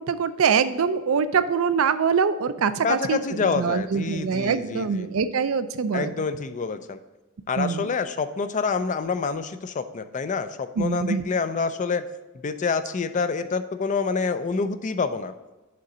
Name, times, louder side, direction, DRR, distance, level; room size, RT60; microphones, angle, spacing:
voice 1, 0.0-6.1 7.6-7.9 10.8-11.2, right 6 dB, 70° right, 12 dB, 0.4 m, -24 dB
voice 2, 2.8-5.1 5.9-7.0 7.5-12.0 12.4-15.3, left 5 dB, 35° left, 11 dB, 0.4 m, -27 dB
6.7 x 3.9 x 6.1 m, 1.1 s
head